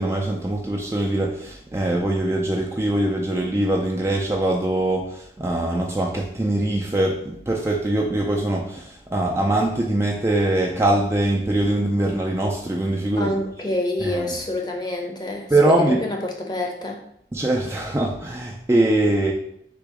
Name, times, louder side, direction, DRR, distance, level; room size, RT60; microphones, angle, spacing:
voice 1, 0.0-13.4 14.0-14.3 15.5-16.0 17.3-19.3, right 1 dB, 15° right, -1 dB, 0.4 m, -22 dB
voice 2, 13.2-17.0, left 1 dB, 25° left, 1 dB, 0.7 m, -27 dB
3.7 x 2.9 x 4.8 m, 0.71 s
head